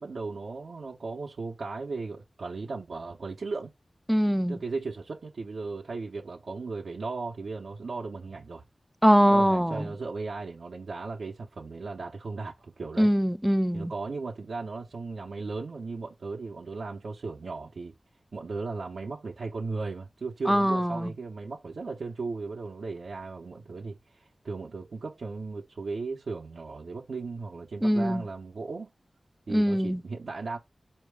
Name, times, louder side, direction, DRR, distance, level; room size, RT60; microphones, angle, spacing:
voice 1, 0.0-3.7 4.5-8.6 9.3-13.1 13.7-17.9 18.3-24.0 24.4-28.9 29.5-30.6, right 4 dB, 90° right, 0.8 m, -36 dB
voice 2, 4.1-4.6 9.0-9.9 13.0-13.9 20.5-21.1 27.8-28.2 29.5-30.0, equal, 5° right, 0.3 m, -23 dB
4.7 x 2.9 x 3.4 m
wide cardioid pair, 75°, 0 cm